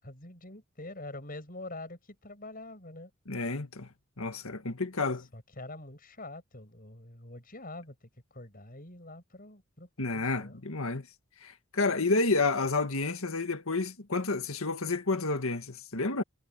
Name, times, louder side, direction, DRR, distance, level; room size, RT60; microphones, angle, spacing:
voice 1, 0.0-3.1 5.3-10.7, left 2 dB, 40° left, 7.2 m, -45 dB
voice 2, 3.3-3.9 4.2-5.3 10.0-11.1 11.4-16.2, left 3 dB, 75° left, 1.8 m, -30 dB
head